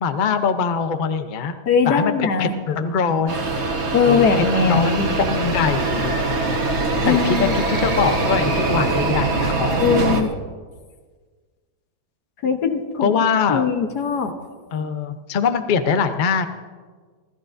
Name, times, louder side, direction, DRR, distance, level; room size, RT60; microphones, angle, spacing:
voice 1, 0.0-1.5 1.9-2.1 2.4-3.4 4.1-6.4 7.0-10.0 13.0-13.7 14.7-16.5, left 6 dB, 50° left, 8 dB, 0.5 m, -23 dB
voice 2, 1.7-2.5 3.9-5.5 7.0-7.5 9.8-10.3 12.4-13.1 13.5-14.3, left 6 dB, 70° left, 6 dB, 1.6 m, -20 dB
sound 1, 3.3-10.2, right 2 dB, 40° right, 1.4 m, -22 dB
27.0 x 13.5 x 2.6 m, 1.5 s
omnidirectional pair, 1.8 m